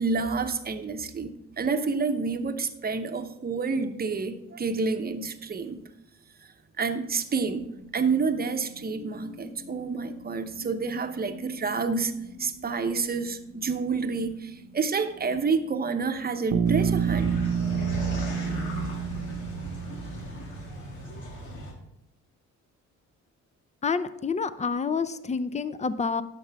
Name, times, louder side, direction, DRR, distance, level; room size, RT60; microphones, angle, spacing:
voice 1, 0.0-5.8 6.8-12.1 12.4-17.3, right 4 dB, 30° right, 8 dB, 0.8 m, -29 dB
sound 1, 7.7-19.9, left 1 dB, 50° left, 3.0 m, -48 dB
Bass guitar, 16.5-20.5, right 7 dB, 70° right, 0.8 m, -28 dB
sound 2, 16.7-21.7, equal, 85° left, 2.3 m, -36 dB
voice 2, 23.8-26.2, left 5 dB, 25° left, 14 dB, 0.5 m, -28 dB
10.5 x 6.7 x 3.4 m, 0.87 s
cardioid pair, 90°, 30 cm